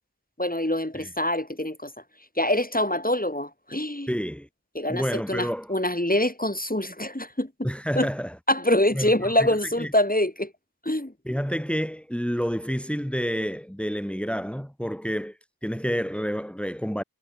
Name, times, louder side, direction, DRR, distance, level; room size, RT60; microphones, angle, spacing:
voice 1, 0.4-1.9 2.4-4.1 4.7-7.7 8.0-8.1 8.5-10.5 10.8-11.1, left 1 dB, 25° left, 5.8 m, -25 dB
voice 2, 4.1-4.5 4.9-5.7 7.6-8.4 8.9-9.5 9.8-9.9 11.3-17.0, equal, 5° left, 5.2 m, -29 dB
wide cardioid pair, 40°, 36 cm